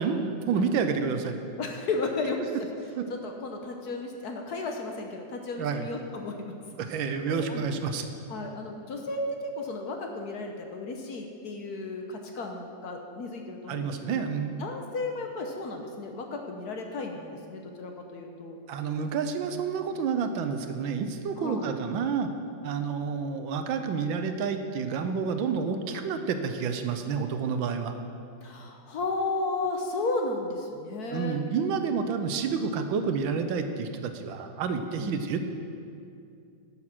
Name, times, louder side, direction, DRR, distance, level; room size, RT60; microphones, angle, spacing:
voice 1, 0.0-1.4 2.4-2.5 3.0-3.1 5.6-5.9 6.8-8.1 13.7-14.6 18.7-22.3 22.6-27.9 31.1-35.4, right 6 dB, 80° right, 7 dB, 1.4 m, -29 dB
voice 2, 1.6-2.4 3.1-6.5 7.3-7.6 8.3-14.2 14.6-18.6 21.4-21.7 28.4-31.4 35.0-35.2, left 3 dB, 60° left, 3 dB, 1.2 m, -34 dB
12.0 x 7.4 x 5.9 m, 2.5 s
omnidirectional pair, 2.2 m